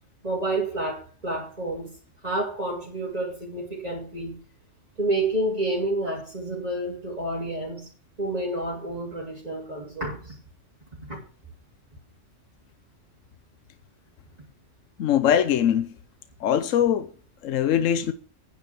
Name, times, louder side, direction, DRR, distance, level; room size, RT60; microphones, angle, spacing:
voice 1, 0.2-1.9 2.2-4.4 5.0-7.9 8.2-10.4 11.1-11.2, right 2 dB, 30° right, 3.2 m, -29 dB
voice 2, 15.0-15.9 16.4-17.1 17.4-18.1, left 9 dB, 80° left, 1.1 m, -22 dB
9.9 x 9.9 x 6.0 m
omnidirectional pair, 1.3 m